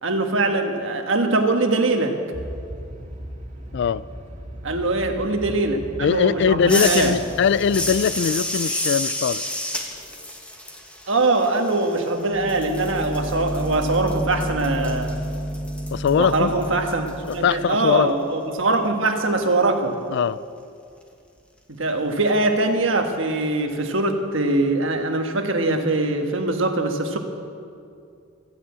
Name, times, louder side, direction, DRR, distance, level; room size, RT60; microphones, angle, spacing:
voice 1, 0.0-2.2 4.6-7.1 11.1-15.2 16.2-20.0 21.7-27.2, right 2 dB, 65° right, 4 dB, 1.4 m, -22 dB
sound 1, 2.3-7.9, equal, 40° right, 2.2 m, -37 dB
voice 2, 3.7-4.0 6.0-9.4 15.9-16.5 17.3-18.1 20.1-20.4, left 7 dB, 55° left, 19 dB, 0.3 m, -21 dB
sound 2, 6.7-12.2 12.5-17.3, left 1 dB, 5° left, 1.4 m, -30 dB
sound 3, 12.3-17.7, equal, 30° left, 1.1 m, -30 dB
15.0 x 9.7 x 8.5 m, 2.4 s
head